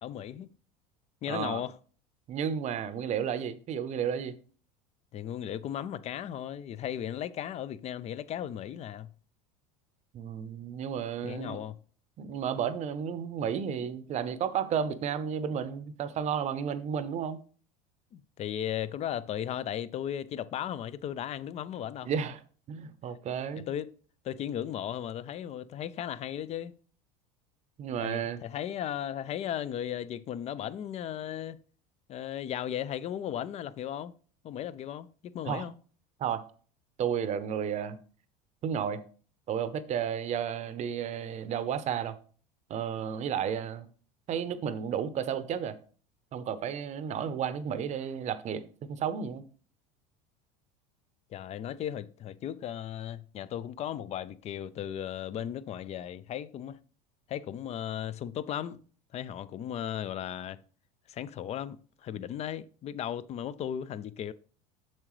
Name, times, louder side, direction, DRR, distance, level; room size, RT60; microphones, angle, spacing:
voice 1, 0.0-0.5 1.2-1.8 5.1-9.1 11.2-11.8 18.1-22.1 23.7-23.9 24.2-26.7 28.0-31.6 32.1-34.1 34.4-35.7 51.3-56.8 57.3-58.8 59.1-60.6 61.1-64.3, left 10 dB, 35° left, 0.5 m, -36 dB
voice 2, 1.3-1.6 2.3-4.4 10.1-11.6 12.2-17.4 22.0-22.4 22.7-23.7 27.8-28.4 35.4-35.7 36.2-36.4 37.0-38.0 38.6-39.0 39.5-42.1 42.7-43.8 44.3-45.8 46.3-48.6 48.9-49.4 62.1-62.3, right 8 dB, 40° right, 0.8 m, -32 dB
7.4 x 6.6 x 3.2 m
supercardioid pair, 115°, 18 cm